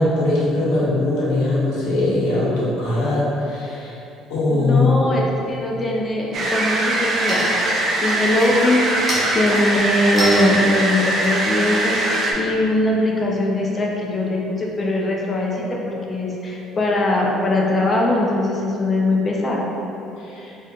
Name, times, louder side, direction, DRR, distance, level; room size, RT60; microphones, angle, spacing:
voice 1, 0.0-4.0 4.3-5.2 20.2-20.5, left 2 dB, 85° left, -6 dB, 0.8 m, -20 dB
voice 2, 4.5-7.4 8.0-19.6, left 1 dB, 25° left, -2 dB, 0.5 m, -21 dB
sound 1, 6.2-6.3 6.6-7.0 7.3-7.8 8.3-12.7, equal, 5° left, 1.0 m, -29 dB
sound 2, 6.3-12.3, right 2 dB, 45° right, 0.4 m, -22 dB
4.2 x 2.3 x 2.3 m, 2.9 s
cardioid pair, 125°, 0 cm